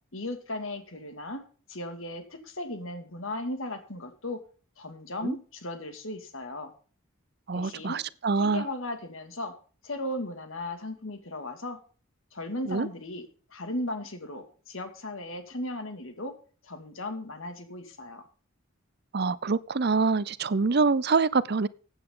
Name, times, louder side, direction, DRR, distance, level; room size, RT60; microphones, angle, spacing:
voice 1, 0.1-1.4 1.7-4.4 4.8-6.7 7.5-8.0 8.4-9.5 9.8-11.8 12.3-13.2 13.5-16.3 16.6-18.2, left 1 dB, 70° left, 2.2 m, -36 dB
voice 2, 7.5-8.6 12.7-12.9 19.1-21.7, right 4 dB, 50° right, 0.6 m, -25 dB
15.5 x 9.0 x 3.8 m
head